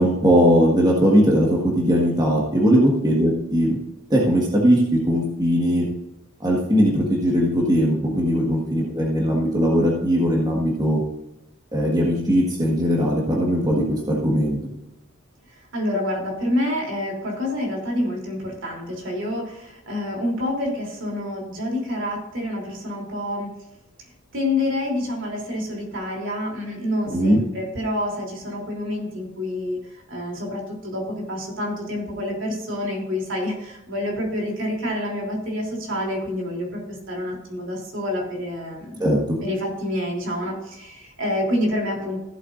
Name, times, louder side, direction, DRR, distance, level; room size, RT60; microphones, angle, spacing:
voice 1, 0.0-3.8 4.1-5.9 6.4-11.0 11.7-14.6 27.1-27.4 39.0-39.4, equal, 20° right, -3 dB, 1.6 m, -19 dB
voice 2, 15.7-23.5 24.3-39.1 39.4-42.2, left 1 dB, 60° right, -1 dB, 3.4 m, -27 dB
15.0 x 8.1 x 2.6 m, 0.91 s
head